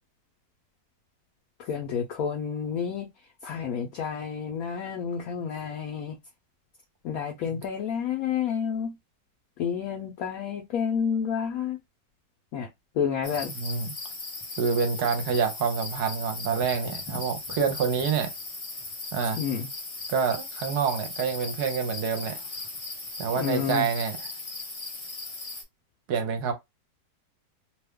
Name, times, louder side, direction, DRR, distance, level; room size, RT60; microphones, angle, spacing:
voice 1, 1.6-3.1 3.4-6.2 7.0-9.0 9.6-11.8 12.5-12.7 12.9-13.5 19.3-19.7 23.4-23.9, left 7 dB, 65° left, 0.9 m, -30 dB
sound 1, 13.2-25.6, left 3 dB, 50° left, 0.3 m, -38 dB
voice 2, 13.6-13.9 14.6-18.3 19.1-19.4 20.1-22.4 23.2-24.3 26.1-26.5, right 6 dB, 70° right, 1.1 m, -27 dB
2.9 x 2.3 x 3.5 m
omnidirectional pair, 1.9 m